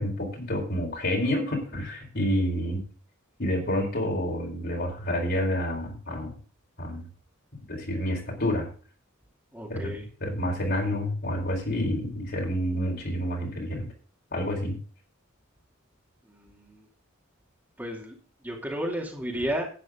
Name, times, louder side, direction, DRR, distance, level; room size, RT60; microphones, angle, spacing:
voice 1, 0.0-2.8 3.4-6.3 6.8-7.1 7.7-8.7 9.7-13.9 14.3-14.8, left 1 dB, 50° left, 1 dB, 4.3 m, -29 dB
voice 2, 9.5-10.1 16.3-16.9 17.8-18.1 18.4-19.6, equal, 10° right, -1 dB, 2.5 m, -33 dB
11.5 x 9.6 x 3.7 m, 0.39 s
head